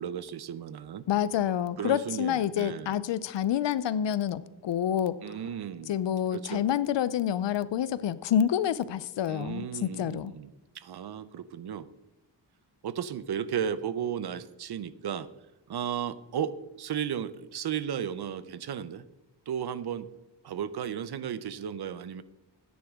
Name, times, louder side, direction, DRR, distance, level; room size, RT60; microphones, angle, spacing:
voice 1, 0.0-1.0 1.8-2.9 5.2-5.9 6.3-6.6 9.3-10.5 10.7-11.9 12.8-15.3 15.7-19.0 19.5-20.1 20.4-22.2, right 8 dB, 60° right, 15 dB, 0.7 m, -34 dB
voice 2, 1.1-5.2 5.9-10.3, left 10 dB, 80° left, 17 dB, 0.6 m, -28 dB
13.5 x 9.6 x 3.6 m, 0.98 s
wide cardioid pair, 120°, 43 cm